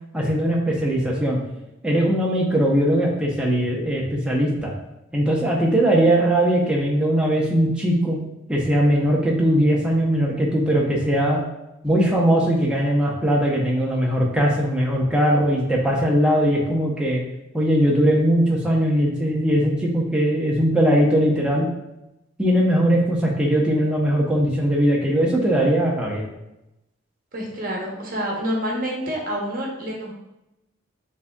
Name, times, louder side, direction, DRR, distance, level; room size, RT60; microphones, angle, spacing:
voice 1, 0.1-1.4 1.8-4.7 5.1-8.2 8.5-11.4 11.8-17.2 17.5-21.7 22.4-26.3, equal, 5° right, -3 dB, 0.6 m, -20 dB
voice 2, 27.3-30.1, equal, 40° right, -2 dB, 0.8 m, -27 dB
6.6 x 2.7 x 2.2 m, 0.91 s
head